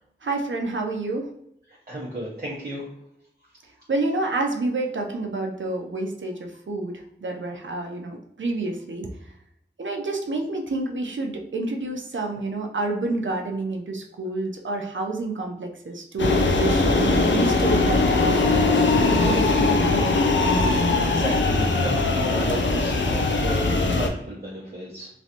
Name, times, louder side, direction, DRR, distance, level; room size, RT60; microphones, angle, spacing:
voice 1, 0.2-1.3 3.9-9.1 9.8-18.5 19.2-20.1, right 2 dB, 90° right, 2 dB, 0.5 m, -29 dB
voice 2, 1.7-2.9 21.0-25.1, equal, 50° right, -6 dB, 0.8 m, -33 dB
sound 1, 16.2-24.1, left 3 dB, 80° left, 0.4 m, -20 dB
3.1 x 2.5 x 2.7 m, 0.75 s
wide cardioid pair, 55°, 19 cm